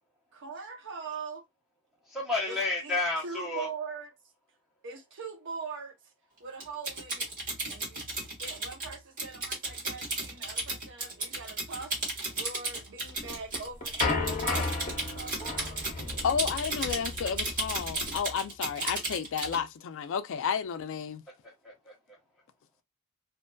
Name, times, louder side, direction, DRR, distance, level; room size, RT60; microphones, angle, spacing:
voice 1, 0.3-1.4 2.4-4.1 4.8-6.0 6.4-7.3 7.7-8.1 8.4-12.0 12.3-15.8, right 5 dB, 60° right, 0.7 m, -42 dB
voice 2, 2.1-3.7 21.4-22.2, left 3 dB, ahead, 0.8 m, -32 dB
Typing, 6.6-19.6, right 2 dB, 40° right, 1.4 m, -34 dB
sound 1, 13.2-18.2, left 3 dB, 35° left, 0.8 m, -34 dB
voice 3, 16.2-21.2, left 7 dB, 65° left, 0.4 m, -32 dB
2.5 x 2.5 x 2.2 m
head